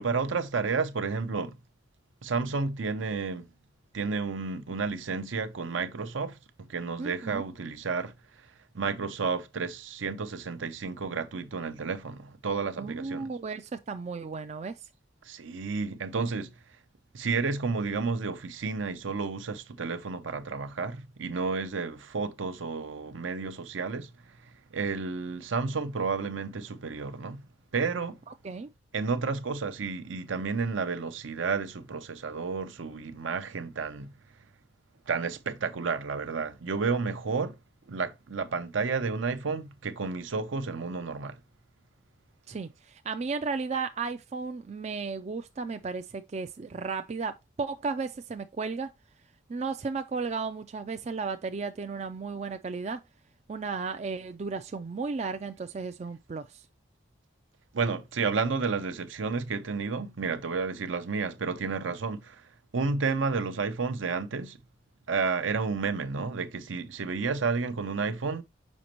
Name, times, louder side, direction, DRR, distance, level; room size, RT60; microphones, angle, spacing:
voice 1, 0.0-1.6 2.2-3.5 3.9-8.1 8.7-13.3 15.2-16.5 17.1-27.5 27.7-28.2 28.9-34.1 35.1-37.6 37.9-41.4 57.7-62.4 62.7-64.6 65.1-68.4, right 4 dB, 70° right, 0.6 m, -31 dB
voice 2, 7.0-7.5 12.8-14.8 28.4-28.7 42.5-48.9 49.5-53.0 53.5-56.6, right 4 dB, 35° right, 0.3 m, -34 dB
6.3 x 5.1 x 2.9 m
head